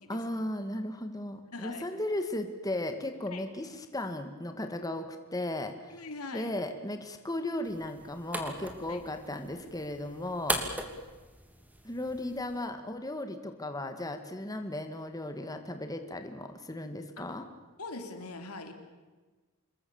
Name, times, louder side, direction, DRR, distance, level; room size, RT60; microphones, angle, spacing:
voice 1, 0.1-6.1 6.3-10.6 11.8-17.4, left 1 dB, 15° left, 7 dB, 1.8 m, -36 dB
voice 2, 1.5-1.8 3.3-3.4 5.9-6.5 8.9-9.0 17.2-17.4 17.8-18.7, left 3 dB, 85° left, 6 dB, 3.5 m, -42 dB
sound 1, 7.6-12.7, right 1 dB, 5° right, 2.8 m, -39 dB
27.0 x 22.0 x 7.1 m, 1.3 s
head